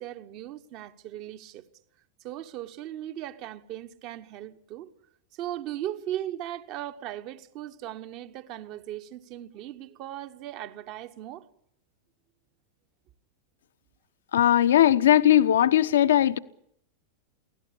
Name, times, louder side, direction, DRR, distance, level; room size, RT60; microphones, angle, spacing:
voice 1, 0.0-1.6 2.2-4.9 5.3-11.5, right 12 dB, 40° right, 1.2 m, -38 dB
voice 2, 14.3-16.4, left 11 dB, 60° left, 0.8 m, -19 dB
23.5 x 16.5 x 8.5 m
figure-of-eight pair, 90°, 0 cm